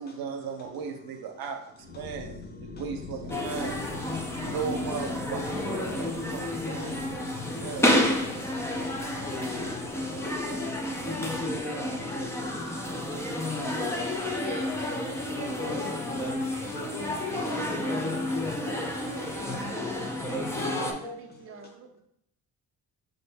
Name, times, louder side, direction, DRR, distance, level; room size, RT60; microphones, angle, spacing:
voice 1, 0.0-3.9 4.5-7.1 7.5-8.0, right 6 dB, 80° right, 0.7 m, -37 dB
voice 2, 0.6-1.1 1.4-2.8 5.1-20.4 21.0-21.7, left 2 dB, 30° left, 0.7 m, -52 dB
sound 1, 1.7-20.5, left 5 dB, 75° left, 0.9 m, -46 dB
sound 2, 3.3-20.9, left 1 dB, 10° left, 0.3 m, -30 dB
voice 3, 19.0-22.0, right 5 dB, 40° right, 0.5 m, -48 dB
5.0 x 2.6 x 3.3 m
cardioid pair, 155°, 35 cm